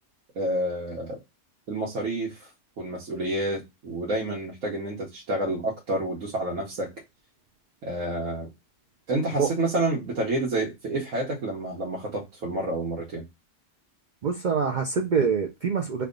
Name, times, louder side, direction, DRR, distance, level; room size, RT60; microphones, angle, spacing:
voice 1, 0.3-1.2 1.7-2.5 2.8-6.9 7.8-8.5 9.1-13.2, right 1 dB, 85° right, 1.2 m, -29 dB
voice 2, 14.2-16.1, right 6 dB, 65° right, 0.5 m, -25 dB
3.4 x 2.3 x 3.6 m
omnidirectional pair, 1.3 m